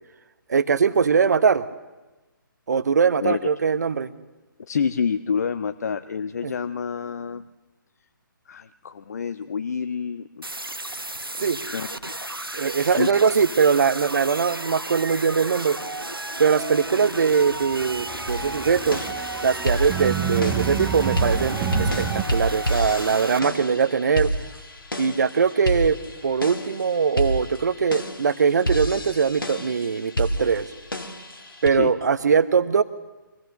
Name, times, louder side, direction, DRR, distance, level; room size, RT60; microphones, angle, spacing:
voice 1, 0.5-1.6 2.7-4.1 6.4-6.5 11.4-11.6 12.5-15.8 16.4-19.0 19.4-24.3 25.0-30.7 31.6-32.8, right 6 dB, 50° right, 13 dB, 1.0 m, -21 dB
voice 2, 4.6-7.4 8.5-10.5 11.4-11.5 11.7-11.9 12.2-12.3 12.8-13.1 31.7-31.9, left 6 dB, 50° left, 11 dB, 0.6 m, -28 dB
sound 1, 10.4-23.4, right 1 dB, 90° right, 0.9 m, -33 dB
sound 2, 17.4-22.2, right 7 dB, 15° right, 1.2 m, -29 dB
sound 3, 18.3-31.7, equal, 75° left, 2.0 m, -30 dB
24.0 x 16.5 x 6.6 m, 1.1 s
figure-of-eight pair, 135°, 12 cm